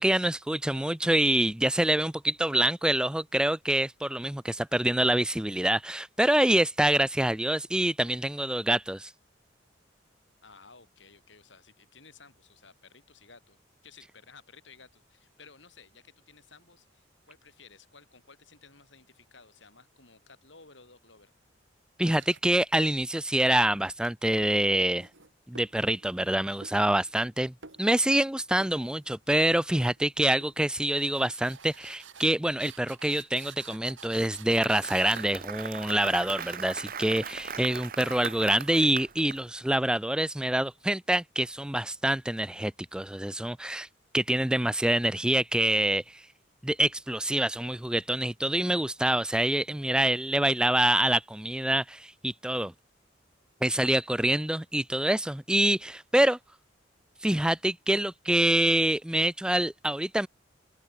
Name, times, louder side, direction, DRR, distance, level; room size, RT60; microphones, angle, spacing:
voice 1, 0.0-9.1 22.0-25.1 25.5-43.9 44.1-46.3 46.6-52.7 53.6-56.4 57.2-60.3, right 1 dB, 5° right, 0.4 m, -26 dB
voice 2, 10.4-13.6 13.8-21.3, left 4 dB, 75° left, 7.1 m, -55 dB
sound 1, 22.2-23.3 23.7-26.3 26.6-27.3 27.6-28.3 28.6-29.2 29.5-30.0 30.4-39.0, right 7 dB, 85° right, 4.2 m, -52 dB
Applause, 34.2-39.4, right 6 dB, 50° right, 1.6 m, -39 dB
open air
head